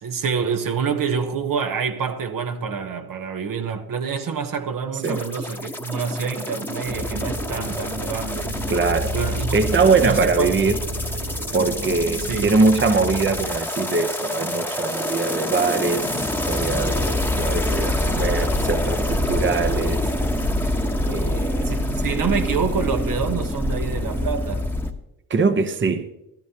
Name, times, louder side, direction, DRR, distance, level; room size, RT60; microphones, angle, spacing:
voice 1, 0.0-8.6 9.1-10.5 12.3-12.5 21.7-24.6, right 6 dB, 55° right, 1.0 m, -27 dB
sound 1, 5.0-24.9, left 1 dB, 5° left, 1.1 m, -26 dB
sound 2, 6.8-13.6, equal, 80° right, 3.3 m, -30 dB
voice 2, 8.7-9.1 9.5-10.8 11.5-20.0 21.1-21.7 25.3-26.1, right 4 dB, 30° right, 0.8 m, -22 dB
14.5 x 12.5 x 2.8 m
cardioid pair, 85°, 39 cm